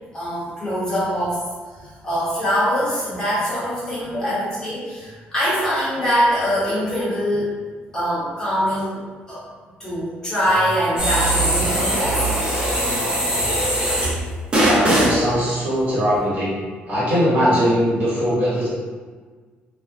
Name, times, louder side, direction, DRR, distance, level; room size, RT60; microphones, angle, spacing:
voice 1, 0.1-1.4 1.8-7.6 7.9-9.0 9.3-9.4 9.8-12.3, equal, 20° left, -10 dB, 1.0 m, -23 dB
sound 1, 11.0-14.2 14.5-15.2, right 1 dB, 25° right, 0.8 m, -20 dB
voice 2, 14.6-16.5 16.9-18.7, equal, 50° right, -9 dB, 1.2 m, -20 dB
2.5 x 2.2 x 3.4 m, 1.5 s
cardioid pair, 170°, 4 cm